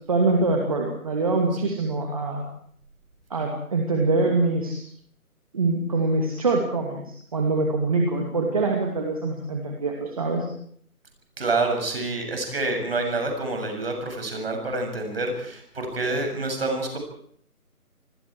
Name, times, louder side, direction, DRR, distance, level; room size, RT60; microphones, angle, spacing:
voice 1, 0.1-2.4 3.3-4.8 5.5-10.5, right 3 dB, 25° right, 1 dB, 2.4 m, -24 dB
voice 2, 11.4-17.0, right 2 dB, 40° right, 3 dB, 7.2 m, -27 dB
28.5 x 20.5 x 4.8 m, 0.63 s
figure-of-eight pair, 160°, 44 cm